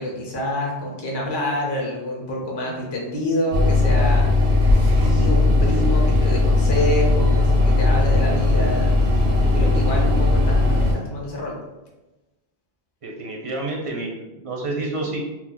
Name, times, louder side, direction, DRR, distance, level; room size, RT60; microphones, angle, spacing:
voice 1, 0.0-11.6, left 1 dB, 30° left, -2 dB, 0.6 m, -27 dB
sound 1, 3.5-10.9, left 2 dB, 80° right, 0.9 m, -18 dB
voice 2, 13.0-15.3, right 2 dB, 40° right, -1 dB, 0.5 m, -29 dB
2.9 x 2.0 x 3.7 m, 1.0 s
omnidirectional pair, 1.1 m